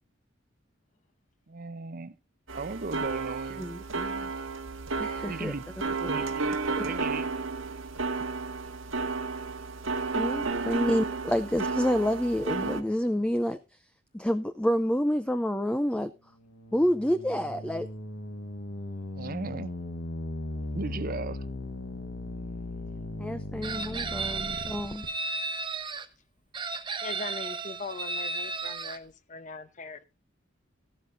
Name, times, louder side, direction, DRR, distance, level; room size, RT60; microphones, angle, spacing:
voice 1, 1.5-2.1 2.5-3.7 5.3-7.3 19.1-19.7 20.7-21.5, right 3 dB, 45° right, 0.7 m, -37 dB
sound 1, 2.5-12.8, right 4 dB, 90° right, 1.7 m, -32 dB
voice 2, 3.6-4.3 5.0-5.5 6.0-6.3 6.8-6.9 10.1-13.6 14.1-16.1 16.7-17.9 23.2-25.1, equal, 5° left, 0.5 m, -28 dB
sound 2, 16.3-25.1, left 1 dB, 90° left, 1.4 m, -38 dB
Chicken rooster, 23.6-26.1 26.5-29.0, right 3 dB, 25° right, 1.0 m, -34 dB
voice 3, 27.0-30.0, left 3 dB, 40° left, 0.9 m, -40 dB
14.5 x 12.5 x 2.6 m
head